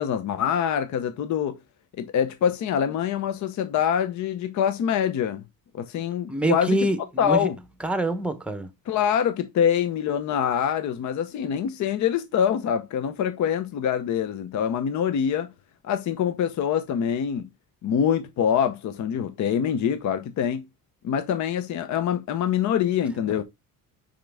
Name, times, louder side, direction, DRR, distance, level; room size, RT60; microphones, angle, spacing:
voice 1, 0.0-1.6 2.0-5.4 5.7-6.9 7.2-7.6 8.9-15.5 15.8-17.5 17.8-20.7 21.0-23.4, left 8 dB, 55° left, 0.7 m, -25 dB
voice 2, 6.3-7.5 7.8-8.7 23.3-23.4, right 1 dB, 5° right, 0.8 m, -25 dB
5.7 x 5.1 x 3.4 m
cardioid pair, 155°, 34 cm